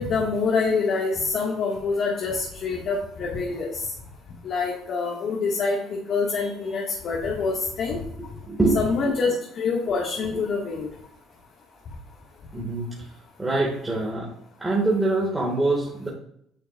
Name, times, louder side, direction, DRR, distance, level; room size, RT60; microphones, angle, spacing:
voice 1, 0.0-3.8 4.4-8.0 8.8-10.9, left 4 dB, 60° left, -3 dB, 2.0 m, -26 dB
voice 2, 8.4-8.8 12.5-13.1 13.4-16.1, right 2 dB, 15° right, -4 dB, 2.3 m, -24 dB
10.0 x 6.5 x 2.6 m, 0.70 s
supercardioid pair, 90°, 0 cm